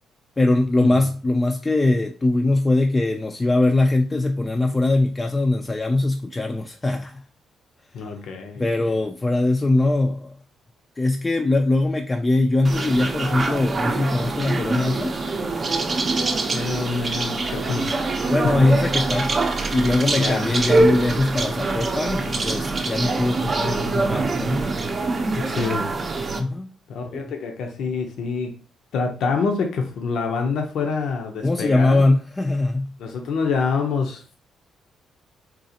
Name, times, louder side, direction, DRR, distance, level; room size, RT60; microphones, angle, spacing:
voice 1, 0.4-7.2 8.6-10.3 11.0-15.2 18.3-19.4 19.7-24.7 26.4-26.7 27.1-27.2 31.4-33.0, left 2 dB, 20° left, 0.3 m, -21 dB
voice 2, 7.9-8.7 16.4-18.0 18.4-18.6 20.1-20.9 25.3-25.9 26.9-28.5 28.9-32.0 33.0-34.2, left 4 dB, 75° left, 0.6 m, -26 dB
sound 1, 12.6-26.4, right 3 dB, 40° right, 0.6 m, -24 dB
3.9 x 2.4 x 2.8 m
cardioid pair, 90°, 0 cm